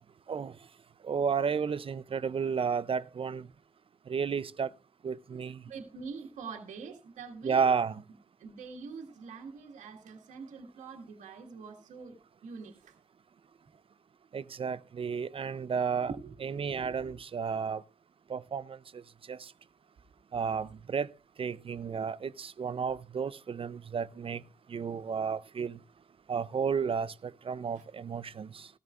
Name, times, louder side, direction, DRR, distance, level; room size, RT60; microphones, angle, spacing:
voice 1, 1.0-3.5 4.1-4.7 5.0-5.6 7.4-8.0 14.3-16.1 16.4-17.8 18.3-19.0 19.3-19.5 20.3-21.1 21.4-24.4 24.7-25.8 26.3-28.7, right 6 dB, 45° right, 0.5 m, -32 dB
voice 2, 5.7-7.7 8.4-13.0 16.0-17.1, right 5 dB, 85° right, 1.8 m, -45 dB
15.5 x 13.5 x 2.4 m
supercardioid pair, 50°, 12 cm